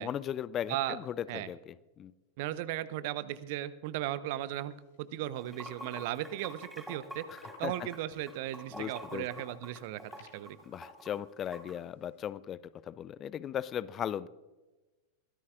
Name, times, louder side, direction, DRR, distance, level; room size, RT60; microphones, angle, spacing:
voice 1, 0.0-2.1 7.3-7.7 8.7-9.3 10.7-14.3, left 10 dB, 30° left, 19 dB, 0.5 m, -37 dB
voice 2, 2.4-4.7 5.0-7.2 7.6-10.6, right 14 dB, 50° right, 16 dB, 0.7 m, -36 dB
sound 1, 4.4-12.3, left 3 dB, 60° left, 5.0 m, -64 dB
Water / Sink (filling or washing), 5.3-11.7, equal, ahead, 3.8 m, -47 dB
23.0 x 17.0 x 2.4 m, 1.2 s
figure-of-eight pair, 90°, 0 cm